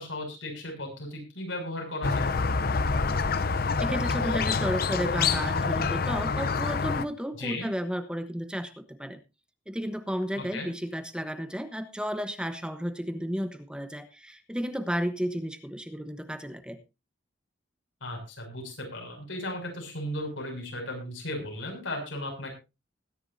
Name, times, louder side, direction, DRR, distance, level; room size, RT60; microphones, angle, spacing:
voice 1, 0.0-2.3 7.4-7.7 10.4-10.7 18.0-22.5, left 1 dB, 90° left, 2 dB, 6.5 m, -36 dB
Squeak, 2.0-7.0, left 4 dB, 50° left, 0.7 m, -27 dB
voice 2, 3.8-9.2 9.7-16.8, equal, 5° right, 8 dB, 1.0 m, -33 dB
20.5 x 10.5 x 2.7 m, 0.27 s
head